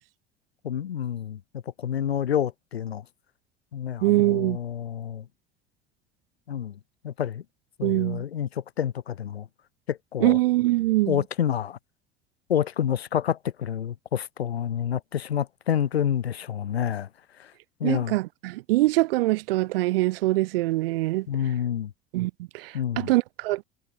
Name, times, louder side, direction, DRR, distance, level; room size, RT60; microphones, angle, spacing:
voice 1, 0.6-3.0 3.7-5.3 6.5-6.8 7.0-7.4 7.8-9.5 9.9-10.4 11.1-11.8 12.5-17.1 17.4-17.5 17.8-18.2 21.3-21.9 22.7-23.1, left 9 dB, 85° left, 0.6 m, -28 dB
voice 2, 4.0-4.6 7.8-8.2 10.2-11.2 17.8-21.3 22.1-23.6, right 19 dB, 65° right, 0.7 m, -23 dB
figure-of-eight pair, 65°, 31 cm